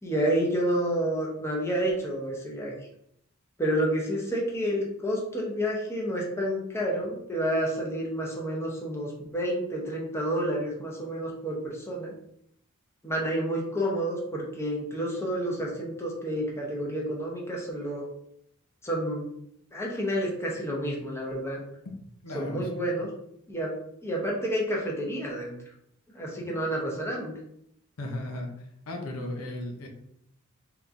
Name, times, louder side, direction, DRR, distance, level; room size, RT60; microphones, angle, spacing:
voice 1, 0.0-2.7 3.6-12.1 13.0-18.0 18.8-19.3 19.7-21.6 22.3-23.1 23.5-23.7 24.0-25.6 26.1-27.3, right 1 dB, 10° left, -3 dB, 0.7 m, -29 dB
voice 2, 22.2-23.0 26.4-26.7 28.0-29.9, left 1 dB, 80° left, 2 dB, 0.6 m, -37 dB
3.5 x 2.9 x 2.5 m, 0.74 s
head